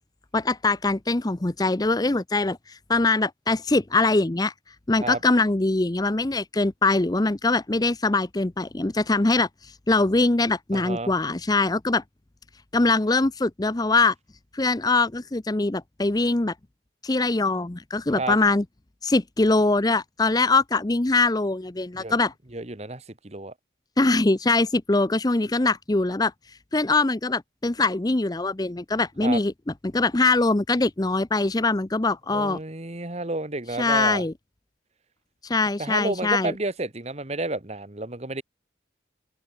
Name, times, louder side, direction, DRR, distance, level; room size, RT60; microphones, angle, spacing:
voice 1, 0.3-4.5 4.9-12.0 12.7-14.1 14.5-16.5 17.0-18.6 19.0-22.3 24.0-26.3 26.7-29.5 29.8-32.6 33.8-34.3 35.4-36.5, left 3 dB, 20° left, 0.6 m, -22 dB
voice 2, 10.7-11.1 18.2-18.4 21.9-22.2 22.5-23.5 29.2-29.4 32.3-34.2 35.8-38.4, right 2 dB, 35° right, 1.5 m, -31 dB
open air
head